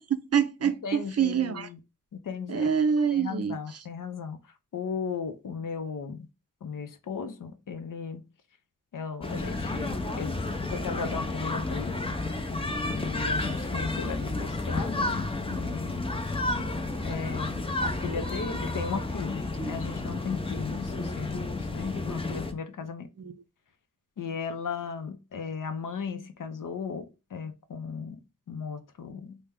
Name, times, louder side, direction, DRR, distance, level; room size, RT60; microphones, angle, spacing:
voice 1, 0.0-1.7 2.5-3.6 16.5-16.8, right 7 dB, 45° right, 0.5 m, -26 dB
voice 2, 0.6-1.8 2.1-2.7 3.1-6.3 6.6-8.3 8.9-10.4 10.7-12.0 12.9-16.1 17.0-23.1 24.2-29.4, left 6 dB, 65° left, 0.6 m, -36 dB
sound 1, 9.2-22.5, left 2 dB, 15° left, 0.6 m, -31 dB
3.2 x 2.2 x 3.5 m
cardioid pair, 55°, 34 cm